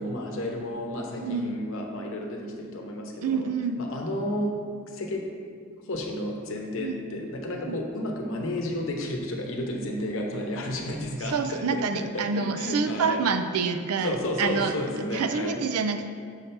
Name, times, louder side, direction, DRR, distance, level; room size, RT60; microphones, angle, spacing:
voice 1, 0.0-3.5 3.8-4.5 4.9-5.2 5.9-13.2 14.0-15.6, left 1 dB, 65° left, 1 dB, 0.8 m, -32 dB
voice 2, 1.2-1.6 3.2-3.8 6.8-6.9 7.7-7.8 11.3-14.7 15.1-16.1, right 5 dB, 85° right, 8 dB, 0.4 m, -27 dB
6.4 x 3.3 x 5.6 m, 2.2 s
head